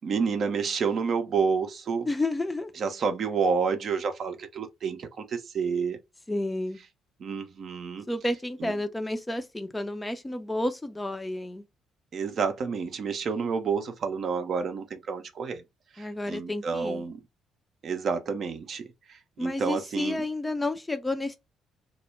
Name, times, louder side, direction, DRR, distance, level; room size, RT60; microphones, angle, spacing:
voice 1, 0.0-2.1 2.8-6.0 7.2-8.1 8.6-8.7 12.1-15.6 15.9-17.2 17.8-20.2, right 5 dB, 50° right, 0.5 m, -29 dB
voice 2, 2.1-2.7 6.3-6.8 8.1-11.6 16.0-17.0 19.4-21.4, left 2 dB, 15° left, 0.4 m, -31 dB
2.1 x 2.1 x 3.2 m
figure-of-eight pair, 45°, 0 cm